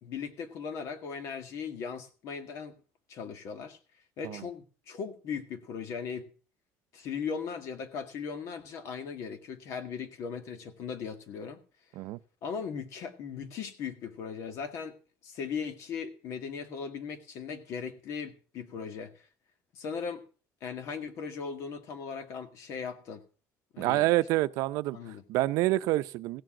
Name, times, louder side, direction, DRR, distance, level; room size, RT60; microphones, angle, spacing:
voice 1, 0.0-2.7 3.1-3.8 4.2-6.3 6.9-11.6 12.4-15.0 15.2-19.3 19.7-20.2 20.6-23.2 23.7-24.1 24.9-25.2, left 6 dB, 65° left, 1.9 m, -38 dB
voice 2, 23.8-25.0 25.3-26.4, right 17 dB, 85° right, 0.6 m, -27 dB
16.0 x 7.7 x 5.9 m
cardioid pair, 150°, 5 cm